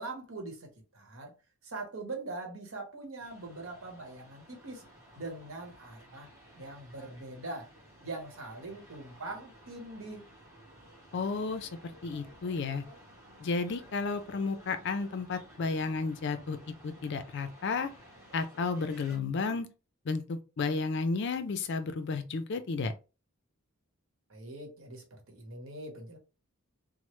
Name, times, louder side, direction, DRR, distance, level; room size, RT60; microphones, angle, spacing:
voice 1, 0.0-1.3 1.6-4.8 5.2-6.3 6.6-7.7 8.0-10.2 24.3-26.2, right 2 dB, 65° right, 1.0 m, -42 dB
sound 1, 3.2-19.2, equal, 15° right, 1.0 m, -55 dB
voice 2, 11.1-11.7 12.0-12.8 13.4-16.6 16.8-17.9 18.3-19.7 20.1-22.9, left 4 dB, 50° left, 0.4 m, -32 dB
3.1 x 2.0 x 3.0 m
head